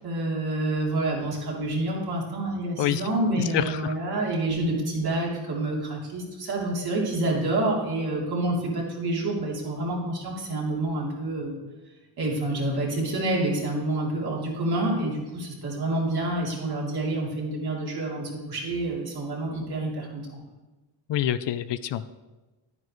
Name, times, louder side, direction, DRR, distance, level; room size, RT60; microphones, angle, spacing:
voice 1, 0.0-11.6 12.2-20.4, right 2 dB, 55° right, -4 dB, 3.2 m, -28 dB
voice 2, 3.5-4.0 21.1-22.1, left 11 dB, 70° left, 13 dB, 0.6 m, -27 dB
11.0 x 9.4 x 3.1 m, 1.2 s
cardioid pair, 110°, 45 cm